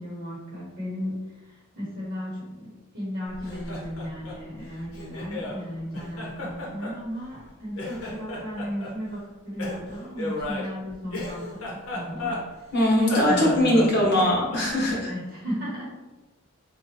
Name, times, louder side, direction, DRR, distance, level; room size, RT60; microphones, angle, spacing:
voice 1, 0.0-12.4 13.2-14.1 14.9-15.9, equal, 45° right, -8 dB, 1.1 m, -35 dB
Laughter, 3.3-5.6 5.9-7.5 7.7-8.9 9.6-12.7 13.0-14.9, left 2 dB, 70° left, 0.9 m, -34 dB
voice 2, 12.7-15.1, left 1 dB, 50° left, -4 dB, 1.2 m, -21 dB
4.0 x 2.4 x 2.9 m, 1.1 s
head